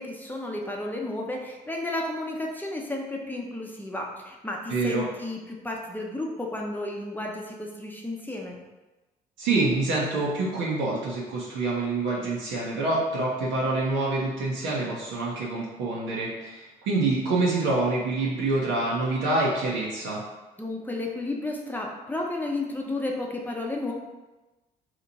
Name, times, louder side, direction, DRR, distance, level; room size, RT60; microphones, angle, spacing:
voice 1, 0.0-8.6 20.6-23.9, left 2 dB, 10° left, 0 dB, 0.7 m, -32 dB
voice 2, 4.7-5.1 9.4-20.2, right 2 dB, 65° right, -6 dB, 0.7 m, -26 dB
2.9 x 2.4 x 4.0 m, 1.1 s
hypercardioid pair, 50°, 21 cm